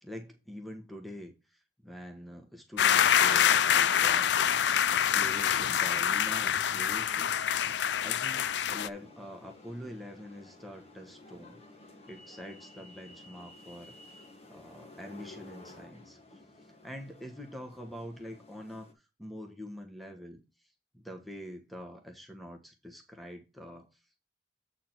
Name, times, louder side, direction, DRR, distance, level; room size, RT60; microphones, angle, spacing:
voice 1, 0.0-7.7 8.0-11.6 12.0-14.2 14.5-18.9 19.2-20.4 20.9-23.9, equal, ahead, 4 dB, 1.3 m, -45 dB
sound 1, 2.8-8.9, left 9 dB, 75° left, 0.4 m, -26 dB
sound 2, 8.9-18.9, left 2 dB, 35° left, 1.6 m, -53 dB
8.3 x 5.0 x 4.4 m, 0.26 s
head